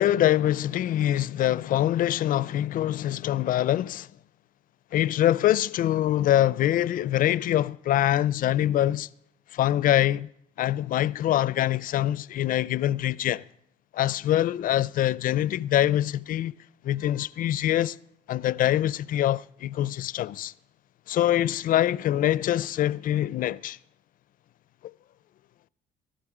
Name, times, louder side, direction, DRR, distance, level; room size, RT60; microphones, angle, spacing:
voice 1, 0.0-4.1 4.9-9.1 9.5-10.3 10.6-13.4 13.9-16.5 16.8-18.0 18.3-20.5 21.1-23.8 24.8-24.9, left 12 dB, 55° left, 0.5 m, -24 dB
19.0 x 12.5 x 4.9 m
cardioid pair, 110°, 17 cm